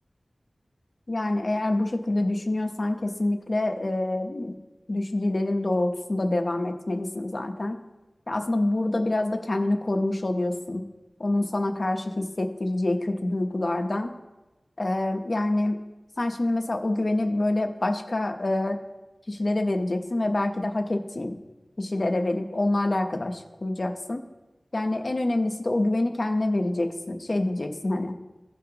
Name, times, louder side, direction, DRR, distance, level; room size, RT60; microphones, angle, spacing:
voice 1, 1.1-4.5 4.9-7.8 8.3-10.8 11.2-14.1 14.8-15.8 16.2-18.8 19.3-21.4 21.8-24.2 24.7-28.2, left 2 dB, 50° left, 4 dB, 0.9 m, -26 dB
16.5 x 5.7 x 2.9 m, 1.1 s
wide cardioid pair, 65°, 0 cm